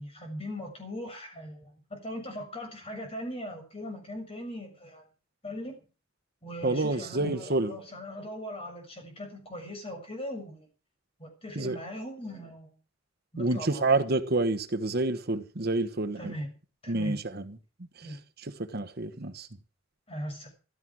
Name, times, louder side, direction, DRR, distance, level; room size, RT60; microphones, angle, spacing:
voice 1, 0.0-5.0 5.4-5.8 6.4-10.7 11.2-12.7 13.3-14.0 16.2-16.5 16.8-17.2 18.0-18.2 20.1-20.5, equal, 30° left, 7.0 m, -39 dB
voice 2, 6.6-7.7 11.6-11.8 13.4-16.3 16.9-17.4 18.7-19.5, right 2 dB, 55° right, 1.2 m, -28 dB
15.0 x 13.0 x 6.3 m
head